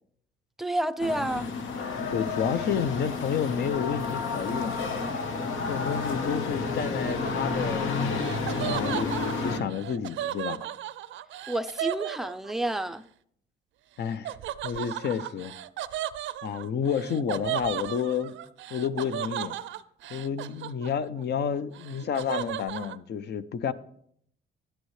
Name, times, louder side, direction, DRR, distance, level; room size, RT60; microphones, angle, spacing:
voice 1, 0.6-1.5 11.5-13.1, right 1 dB, ahead, 0.4 m, -29 dB
sound 1, 1.0-9.6, left 4 dB, 80° left, 1.1 m, -30 dB
voice 2, 2.1-4.8 5.7-8.4 8.7-10.6 14.0-14.3 14.6-15.5 16.4-18.4 18.7-19.6 20.1-23.7, left 7 dB, 60° left, 0.6 m, -30 dB
Laughter, 6.8-12.8 14.2-21.2 21.5-23.0, right 12 dB, 70° right, 0.5 m, -35 dB
11.5 x 9.1 x 3.2 m
cardioid pair, 90°, 20 cm